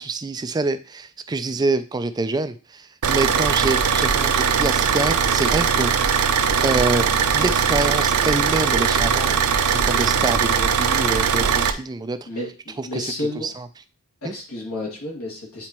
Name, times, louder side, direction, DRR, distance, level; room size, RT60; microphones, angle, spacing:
voice 1, 0.0-5.9 6.6-9.4 9.7-12.3 12.8-13.1 13.4-13.7 14.2-14.3, right 3 dB, 20° right, 11 dB, 0.3 m, -26 dB
Car / Idling, 3.0-11.7, right 7 dB, 85° right, 0.6 m, -20 dB
voice 2, 12.3-13.5 14.2-15.7, left 1 dB, 75° left, -2 dB, 2.1 m, -31 dB
9.1 x 4.2 x 3.0 m, 0.37 s
head